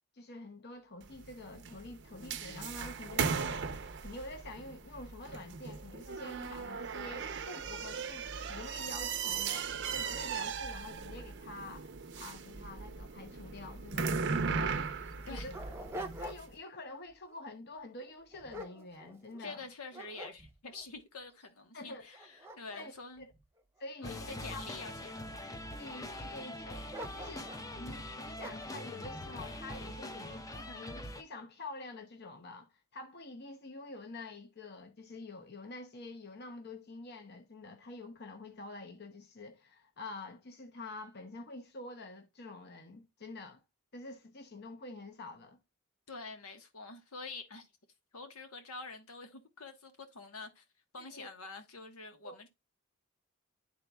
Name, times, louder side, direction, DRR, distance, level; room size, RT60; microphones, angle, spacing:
voice 1, 0.1-3.7 4.0-15.5 16.2-19.7 21.7-22.2 22.7-22.9 23.2-23.3 23.8-24.7 25.8-43.6 43.9-45.6 51.0-51.3 52.2-52.4, left 2 dB, 45° left, 0.8 m, -47 dB
sound 1, 1.0-16.4, right 5 dB, 50° right, 0.6 m, -38 dB
Dog, 14.3-14.4 15.0-16.7 17.1-17.4 18.0-19.5 19.9-20.8 21.4-21.5 22.0-24.3 25.0-25.6 26.9-27.7 28.4-28.8, right 1 dB, 10° right, 0.8 m, -46 dB
voice 2, 15.2-15.5 19.4-23.3 24.0-25.4 46.1-47.7 48.1-50.6 50.9-52.5, left 3 dB, 90° left, 1.3 m, -47 dB
sound 2, 24.0-31.2, left 1 dB, 15° left, 0.5 m, -43 dB
11.5 x 3.9 x 2.3 m
head